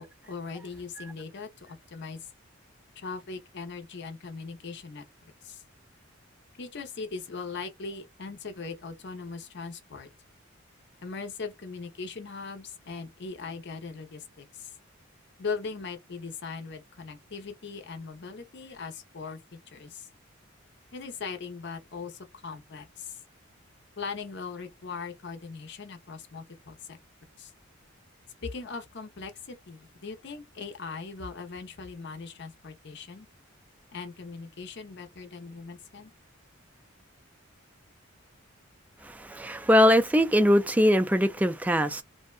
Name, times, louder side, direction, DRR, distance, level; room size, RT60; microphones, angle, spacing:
voice 1, 0.0-2.3 3.0-5.1 5.4-5.6 6.6-10.1 11.0-14.7 15.4-20.1 20.9-23.2 24.0-27.0 27.4-27.5 28.4-33.3 33.9-36.1, left 4 dB, 55° left, 0.7 m, -39 dB
voice 2, 39.0-42.0, equal, 5° right, 0.3 m, -22 dB
2.6 x 2.1 x 2.3 m
head